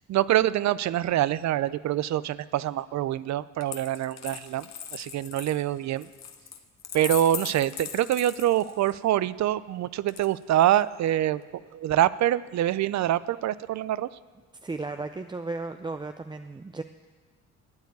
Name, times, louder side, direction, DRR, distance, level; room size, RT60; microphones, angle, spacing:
voice 1, 0.1-6.1 6.9-14.1, right 12 dB, 65° right, 18 dB, 0.6 m, -25 dB
Coin (dropping), 3.6-9.0 10.1-10.8, left 8 dB, 60° left, 1.3 m, -39 dB
voice 2, 14.6-16.8, right 3 dB, 15° right, 7 dB, 0.5 m, -35 dB
13.0 x 9.3 x 9.5 m, 1.4 s
cardioid pair, 90°, 30 cm